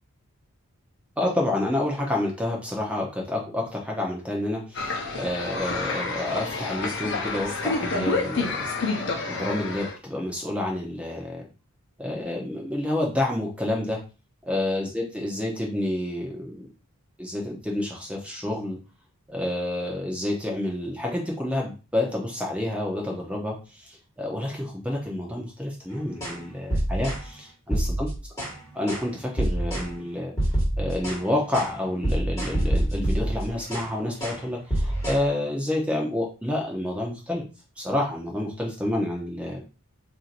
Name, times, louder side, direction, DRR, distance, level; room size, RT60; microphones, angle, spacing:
voice 1, 1.2-8.7 9.3-11.5 12.0-14.0 14.5-16.7 17.2-18.8 19.3-28.1 28.7-30.3 30.8-37.5 37.8-39.6, left 1 dB, 5° right, -1 dB, 0.6 m, -29 dB
sound 1, 4.7-10.0, left 3 dB, 55° left, 0.7 m, -29 dB
sound 2, 26.2-26.4 26.7-27.2 27.7-28.6 28.9-29.1 29.4-29.9 30.4-31.2 31.5-31.7 32.0-33.9 34.2-34.4 34.7-35.2, right 1 dB, 15° left, 1.4 m, -26 dB
4.4 x 2.7 x 2.5 m, 0.32 s
head